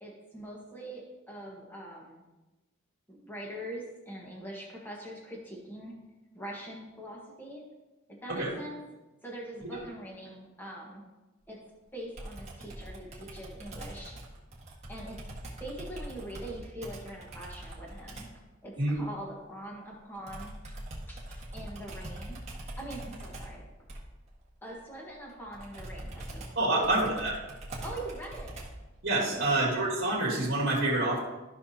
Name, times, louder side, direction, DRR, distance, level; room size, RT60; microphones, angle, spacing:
voice 1, 0.0-2.2 3.1-5.9 6.3-7.6 8.1-8.8 9.2-11.0 11.5-11.6 11.9-14.1 14.9-15.2 15.6-20.5 21.1-22.4 22.8-23.6 24.6-26.4 26.7-26.9 27.8-28.6 29.4-29.6, right 1 dB, 10° left, -2 dB, 1.4 m, -43 dB
Computer keyboard, 12.2-18.4 20.3-28.9, right 1 dB, 35° right, 1.7 m, -43 dB
voice 2, 26.5-27.3 29.0-31.2, right 2 dB, 55° right, -5 dB, 2.7 m, -27 dB
14.0 x 5.8 x 2.8 m, 1.1 s
head